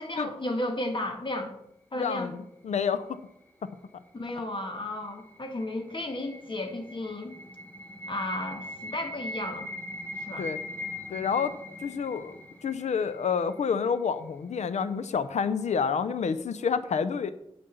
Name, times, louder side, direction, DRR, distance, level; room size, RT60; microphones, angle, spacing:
voice 1, 0.0-1.5 1.9-2.4 4.1-7.4 8.1-9.7 10.3-10.5, left 1 dB, 45° left, 3 dB, 1.9 m, -33 dB
voice 2, 2.0-3.2 10.4-10.6 11.1-11.5 11.8-12.4 12.6-17.3, left 6 dB, 90° left, 12 dB, 0.5 m, -28 dB
sound 1, 4.9-13.9, left 1 dB, 15° left, 1.3 m, -41 dB
8.8 x 5.2 x 6.9 m, 0.80 s
cardioid pair, 50°, 12 cm